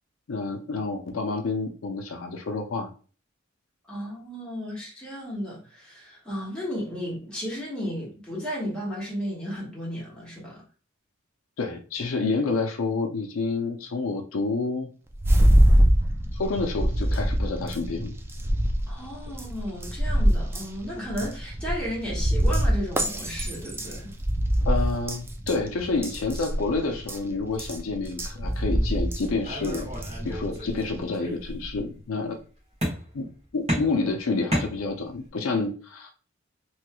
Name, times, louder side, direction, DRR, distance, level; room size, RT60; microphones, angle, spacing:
voice 1, 0.3-2.9 11.6-14.9 16.3-18.1 24.6-29.9 30.2-32.4 33.1-33.3 33.5-36.1, left 3 dB, 75° left, 0.5 m, -28 dB
voice 2, 3.8-10.6 18.9-24.1, equal, 5° left, 1.4 m, -34 dB
sound 1, 15.1-31.0, equal, 10° right, 0.3 m, -25 dB
sound 2, 29.4-30.8 31.1-31.9 32.8-33.3 33.7-35.3, equal, 30° right, 1.4 m, -31 dB
3.1 x 3.0 x 2.2 m
head